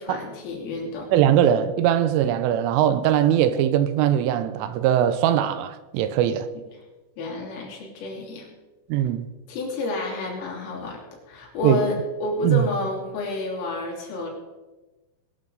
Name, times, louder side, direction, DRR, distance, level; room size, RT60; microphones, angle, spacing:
voice 1, 0.0-1.1 6.6-6.7 7.2-8.5 9.5-11.0 11.3-14.3, left 2 dB, 80° left, 5.8 m, -30 dB
voice 2, 1.1-6.5 8.9-9.3 11.6-11.9 12.4-12.7, right 10 dB, 85° right, 3.3 m, -21 dB
21.0 x 12.0 x 4.0 m
omnidirectional pair, 5.9 m